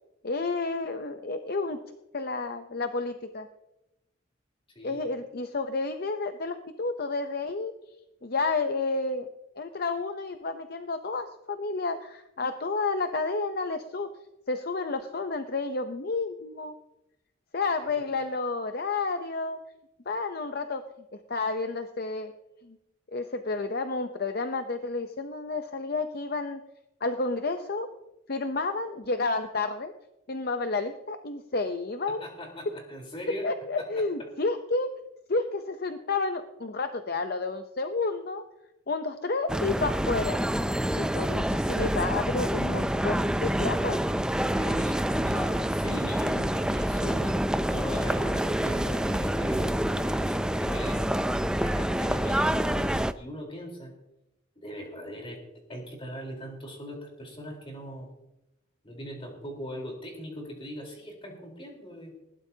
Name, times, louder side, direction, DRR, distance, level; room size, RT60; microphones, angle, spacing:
voice 1, 0.2-1.8 2.1-3.5 4.8-7.7 8.2-9.3 9.6-14.1 14.5-16.7 17.5-19.6 20.1-20.8 21.1-22.3 22.6-22.8 23.1-26.6 27.0-27.9 28.3-29.9 30.3-32.2 33.3-34.9 35.3-38.4 38.9-40.4 40.9-44.0 45.3-45.7, left 3 dB, 50° left, 8 dB, 0.7 m, -30 dB
voice 2, 4.8-5.1 18.0-18.1 32.2-33.5 33.8-34.0 44.5-47.4 47.7-51.0 51.5-53.9 54.6-55.4 55.7-58.1 58.8-62.1, equal, 30° left, 0 dB, 4.0 m, -40 dB
sound 1, 39.5-53.1, right 1 dB, 5° right, 0.4 m, -27 dB
20.5 x 16.0 x 2.8 m, 0.91 s
head